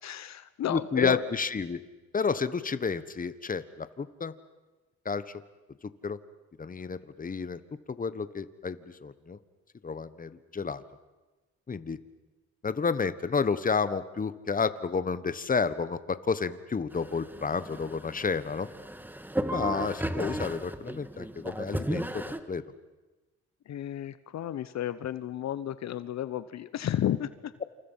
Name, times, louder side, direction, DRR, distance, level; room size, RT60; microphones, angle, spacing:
voice 1, 0.0-1.2 23.7-27.5, left 11 dB, 60° left, 14 dB, 0.9 m, -32 dB
voice 2, 0.7-1.8 2.1-4.3 5.0-5.2 6.0-6.2 6.6-7.6 7.9-9.4 9.8-10.8 11.7-12.0 12.6-18.7 19.5-22.6, left 5 dB, 30° left, 14 dB, 1.4 m, -30 dB
sound 1, 16.9-22.4, right 1 dB, 5° right, 1.7 m, -35 dB
28.5 x 27.5 x 5.8 m, 1.2 s
cardioid pair, 90°, 30 cm